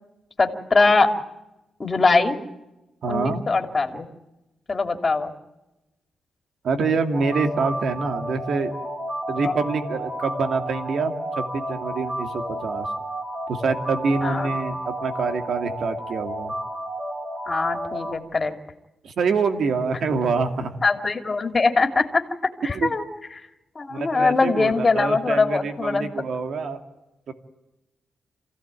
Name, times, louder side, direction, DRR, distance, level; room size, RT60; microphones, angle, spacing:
voice 1, 0.4-1.1 1.8-2.4 3.1-4.1 4.7-5.3 9.4-9.5 14.2-14.5 17.5-18.5 20.8-22.2 22.6-23.0 23.7-26.1, left 3 dB, 30° left, 6 dB, 2.8 m, -21 dB
voice 2, 3.0-3.4 6.6-8.7 9.3-12.9 13.5-16.5 19.0-20.7 22.7-22.9 23.9-26.8 27.3-27.4, right 4 dB, 70° right, 7 dB, 2.5 m, -26 dB
sound 1, 7.1-18.2, right 1 dB, 35° right, 4.7 m, -31 dB
28.0 x 16.5 x 9.1 m, 0.97 s
cardioid pair, 95°, 0 cm